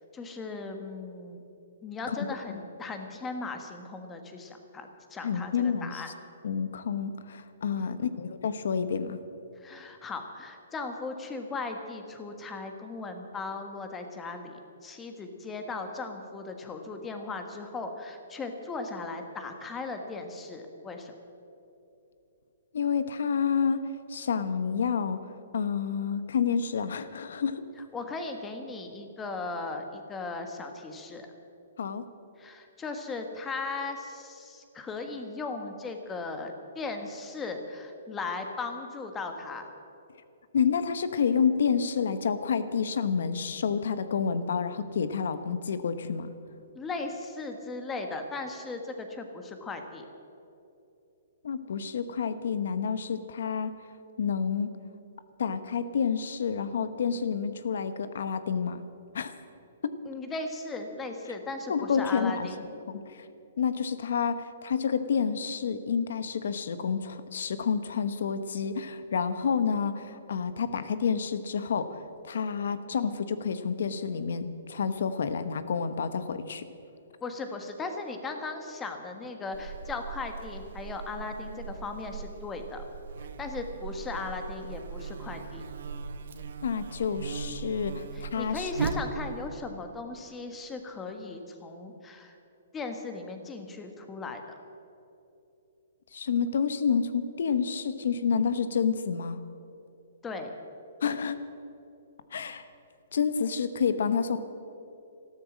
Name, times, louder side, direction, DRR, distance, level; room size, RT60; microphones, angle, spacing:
voice 1, 0.1-1.4 1.8-6.1 7.7-8.0 9.6-21.1 27.9-31.3 32.4-39.7 46.7-50.0 60.1-62.6 77.2-82.8 83.4-85.6 88.1-92.3 92.7-94.4 100.2-100.5, left 3 dB, 15° left, 5 dB, 1.4 m, -37 dB
voice 2, 2.1-2.6 5.2-6.0 6.4-9.2 22.7-23.8 24.1-25.2 25.5-27.6 31.8-32.0 40.5-46.3 51.4-53.7 54.2-54.7 55.4-58.8 59.1-59.3 59.8-59.9 61.7-62.5 62.9-63.3 63.6-72.0 72.2-76.7 86.6-88.7 96.1-99.4 101.0-101.4 102.3-102.6 103.1-104.4, left 6 dB, 70° left, 12 dB, 1.1 m, -29 dB
Buzz, 79.5-89.5, right 5 dB, 70° right, 1.2 m, -38 dB
14.0 x 12.5 x 7.5 m, 2.9 s
hypercardioid pair, 155°, 0 cm